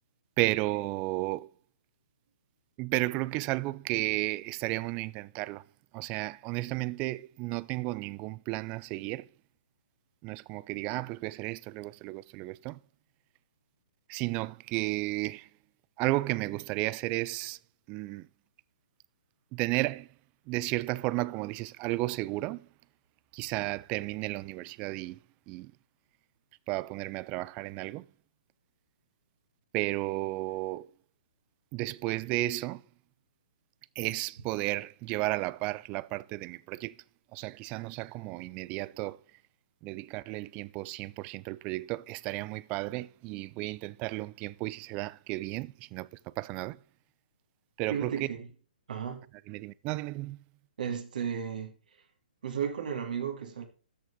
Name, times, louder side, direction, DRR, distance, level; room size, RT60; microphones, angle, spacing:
voice 1, 0.4-1.5 2.8-5.7 5.9-9.3 10.2-12.8 14.1-15.5 16.0-17.6 17.9-18.3 19.5-20.1 20.5-22.7 23.3-25.2 25.5-25.7 26.7-28.1 29.7-30.9 31.7-32.8 34.0-37.0 37.3-39.2 39.8-46.8 47.8-48.3 49.5-50.4, right 20 dB, 25° right, 0.4 m, -33 dB
voice 2, 47.9-48.5 48.9-49.2 50.8-51.8 52.4-53.7, right 7 dB, 65° right, 2.8 m, -34 dB
13.0 x 8.2 x 3.7 m
hypercardioid pair, 135°, 5 cm